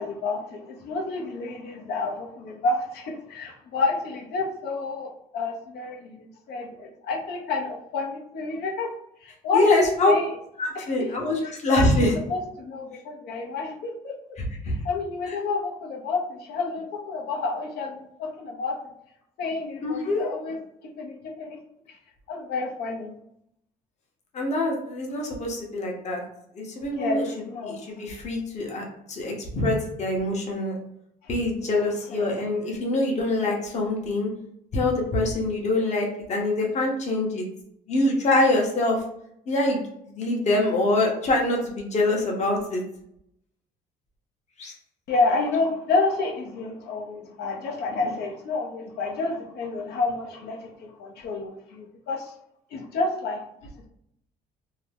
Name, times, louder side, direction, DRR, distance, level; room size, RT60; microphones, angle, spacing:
voice 1, 0.0-8.9 9.2-10.4 10.7-11.1 11.7-11.9 12.3-14.4 14.7-18.8 19.4-20.6 21.0-21.6 21.9-22.0 22.3-23.2 26.9-27.8 31.6-32.3 45.1-52.3 52.7-53.7, left 3 dB, 70° left, 0 dB, 0.7 m, -29 dB
voice 2, 9.5-10.1 10.6-12.1 14.4-14.7 15.3-15.4 19.8-20.3 24.3-26.2 26.5-27.2 27.6-30.7 31.3-34.3 34.7-37.5 37.9-39.0 39.5-39.8 40.1-42.8 44.6-44.7, left 2 dB, 40° left, -1 dB, 0.9 m, -24 dB
2.7 x 2.2 x 3.3 m, 0.75 s
cardioid pair, 110°, 17 cm